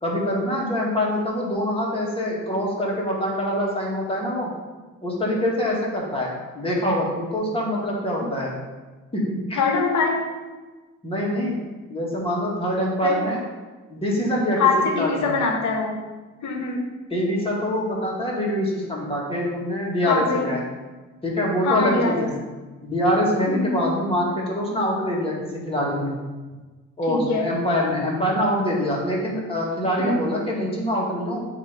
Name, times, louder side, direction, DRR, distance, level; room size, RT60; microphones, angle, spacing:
voice 1, 0.0-4.5 5.0-8.5 9.1-9.6 11.0-11.6 11.9-13.4 13.9-14.6 14.9-15.3 17.1-20.6 21.2-22.3 22.8-26.1 27.0-31.4, equal, 20° left, -4 dB, 2.0 m, -24 dB
voice 2, 9.5-10.2 13.0-13.2 14.6-16.0 16.4-16.8 20.1-20.5 21.6-22.3 23.5-23.9 27.1-27.5 30.0-30.2, left 4 dB, 70° left, 3 dB, 1.3 m, -23 dB
8.1 x 3.0 x 5.3 m, 1.3 s
cardioid pair, 90°, 30 cm